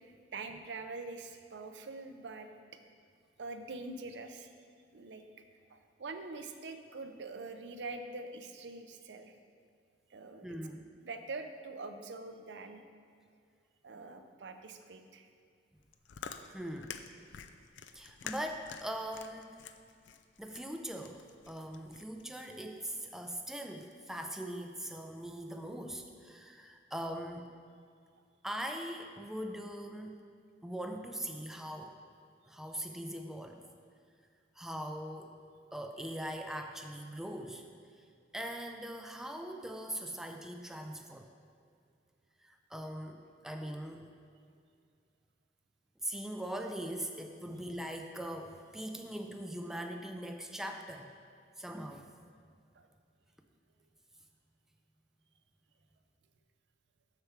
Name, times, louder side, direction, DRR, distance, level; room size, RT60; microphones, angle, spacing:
voice 1, 0.0-2.5 3.4-4.5 4.9-5.2 5.7-9.3 10.1-10.6 11.0-12.8 13.8-15.3 47.5-47.6 52.7-52.9, right 3 dB, 75° right, 7 dB, 0.6 m, -44 dB
voice 2, 10.4-10.9 16.5-17.0 17.9-19.6 20.4-27.5 28.4-30.2 30.6-32.0 32.5-33.6 34.6-35.4 35.7-37.7 38.3-41.3 42.4-44.1 46.0-51.1 51.6-52.1, right 1 dB, 5° right, 4 dB, 0.4 m, -41 dB
Chewing mastication, 15.8-22.3, left 7 dB, 90° left, 0.4 m, -48 dB
6.9 x 6.7 x 4.6 m, 2.2 s
head